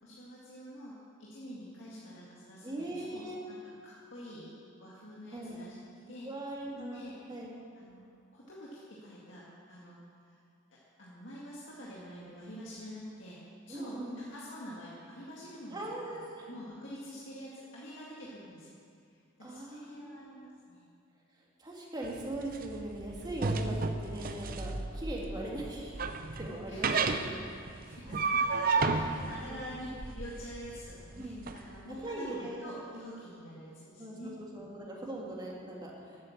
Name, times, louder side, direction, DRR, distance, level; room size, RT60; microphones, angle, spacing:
voice 1, 0.0-0.9 1.2-3.6 3.8-4.5 4.8-5.8 6.1-6.3 6.7-7.1 7.7-8.0 8.3-10.4 11.0-13.4 13.7-18.7 19.1-20.9 26.7-27.4 27.8-34.8, equal, 65° left, -7 dB, 2.0 m, -47 dB
voice 2, 2.6-3.4 5.3-5.6 6.2-7.0 7.3-7.5 13.7-14.2 15.7-16.5 19.4-20.2 21.6-26.0 26.4-26.9 27.2-27.3 28.8-28.9 29.5-29.6 31.2-31.4 32.0-33.2 34.0-36.2, right 1 dB, 20° right, -3 dB, 2.1 m, -40 dB
sound 1, 22.0-31.6, right 4 dB, 45° right, 0.6 m, -33 dB
11.5 x 8.8 x 7.3 m, 2.3 s
head